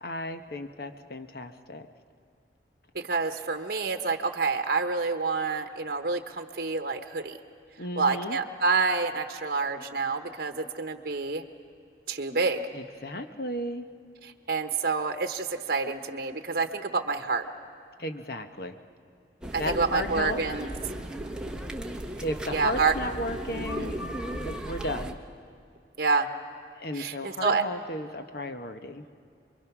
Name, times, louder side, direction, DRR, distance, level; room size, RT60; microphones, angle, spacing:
voice 1, 0.0-1.9 7.8-8.4 12.7-13.8 18.0-18.8 19.5-20.4 22.2-25.2 26.8-29.0, left 1 dB, 60° left, 7 dB, 1.1 m, -34 dB
voice 2, 2.9-7.4 8.0-11.4 12.1-12.7 14.2-17.5 19.5-20.7 22.5-22.9 23.5-23.9 26.0-26.3 27.0-27.7, right 4 dB, 55° right, 7 dB, 1.1 m, -28 dB
sound 1, 19.4-25.1, right 1 dB, 5° right, 1.0 m, -36 dB
27.5 x 22.5 x 6.1 m, 2.4 s
head